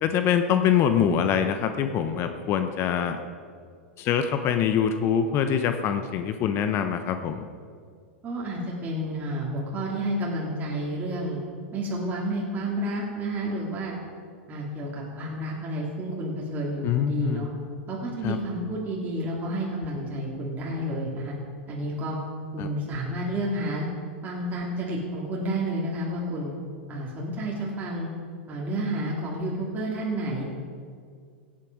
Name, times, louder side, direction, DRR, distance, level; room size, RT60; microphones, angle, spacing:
voice 1, 0.0-3.2 4.0-7.5 16.8-17.5 18.2-18.4 22.6-22.7, left 8 dB, 40° left, 8 dB, 0.8 m, -24 dB
voice 2, 8.2-11.4 11.7-13.9 14.5-17.5 17.9-21.3 21.7-22.2 22.5-23.9 24.2-26.5 26.9-28.1 28.5-30.4, right 1 dB, 25° right, -5 dB, 2.8 m, -30 dB
17.0 x 8.6 x 4.7 m, 2.1 s
hypercardioid pair, 100°, 6 cm